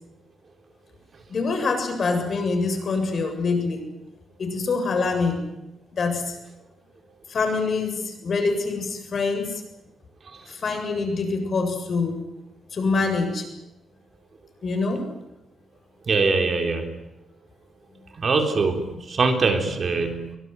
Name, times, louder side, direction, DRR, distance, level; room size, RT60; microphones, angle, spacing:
voice 1, 1.3-3.8 4.4-5.4 5.9-6.4 7.3-9.6 10.5-12.2 12.7-13.5 14.6-15.1, left 4 dB, 40° left, 5 dB, 7.5 m, -25 dB
voice 2, 16.1-17.0 18.2-20.3, right 4 dB, 35° right, 5 dB, 3.6 m, -23 dB
25.0 x 24.0 x 9.6 m, 0.93 s
wide cardioid pair, 180°, 0 cm